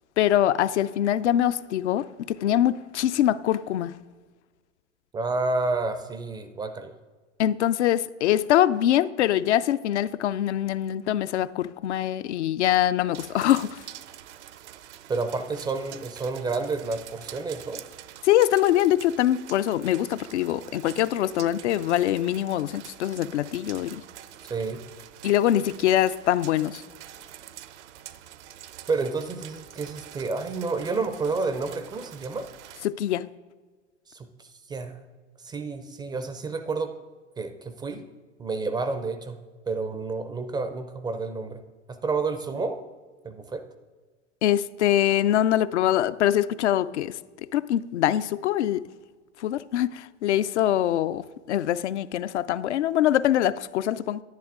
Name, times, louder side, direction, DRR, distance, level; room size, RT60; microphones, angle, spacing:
voice 1, 0.2-3.9 7.4-13.8 18.2-24.0 25.2-26.8 32.8-33.3 44.4-47.2 47.5-48.9 49.4-54.2, left 12 dB, 70° left, 0.5 m, -23 dB
voice 2, 5.1-6.9 15.1-17.8 24.5-24.8 28.9-32.5 34.1-35.0 35.4-36.9 37.4-38.1 38.4-39.4 39.7-41.6 41.9-42.8 43.2-43.7, right 3 dB, 10° right, 0.4 m, -30 dB
sound 1, 13.1-32.9, right 12 dB, 65° right, 0.6 m, -46 dB
10.5 x 10.0 x 3.6 m
hypercardioid pair, 95°, 37 cm